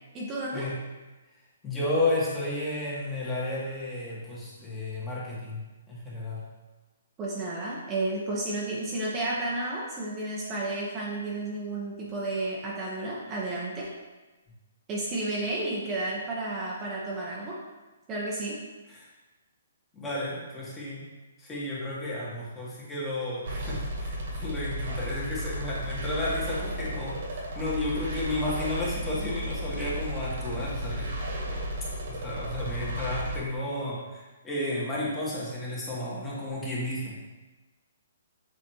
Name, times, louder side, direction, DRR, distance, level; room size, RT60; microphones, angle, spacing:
voice 1, 0.1-0.7 7.2-13.9 14.9-17.6 18.1-18.6, right 2 dB, 25° right, -5 dB, 1.1 m, -32 dB
voice 2, 1.6-6.5 18.9-19.1 19.9-21.0 21.4-31.1 32.1-37.2, left 1 dB, 15° left, -7 dB, 1.9 m, -32 dB
sound 1, 23.4-33.4, equal, 60° right, 1.8 m, -34 dB
7.2 x 4.2 x 3.1 m, 1.2 s
hypercardioid pair, 135°, 0 cm